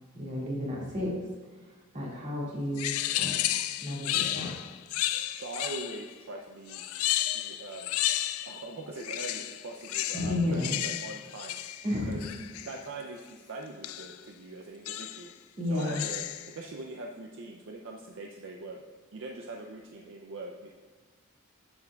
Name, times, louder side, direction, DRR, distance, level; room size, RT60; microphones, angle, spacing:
voice 1, 0.1-1.1 1.9-3.4 3.8-4.5 10.1-10.8 11.8-12.3 15.6-16.0, left 1 dB, 35° right, -5 dB, 2.0 m, -32 dB
sound 1, 2.8-6.1 6.7-8.7 9.0-12.8 13.8-14.2 14.9-15.3 15.8-16.6, left 13 dB, 80° left, 0.3 m, -33 dB
voice 2, 5.4-6.8 7.3-7.9 8.5-11.6 12.1-12.2 12.6-15.3 15.7-18.8 19.1-20.7, right 2 dB, 60° right, 1 dB, 0.5 m, -42 dB
10.5 x 6.8 x 2.3 m, 1.3 s
head